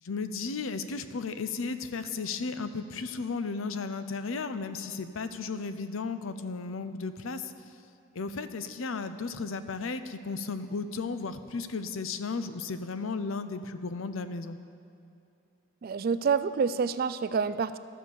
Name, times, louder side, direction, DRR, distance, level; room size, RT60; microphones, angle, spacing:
voice 1, 0.0-7.5 8.1-14.6, left 4 dB, 75° left, 11 dB, 0.6 m, -34 dB
voice 2, 15.8-17.8, right 6 dB, 45° right, 14 dB, 0.3 m, -27 dB
12.5 x 6.5 x 7.0 m, 2.7 s
head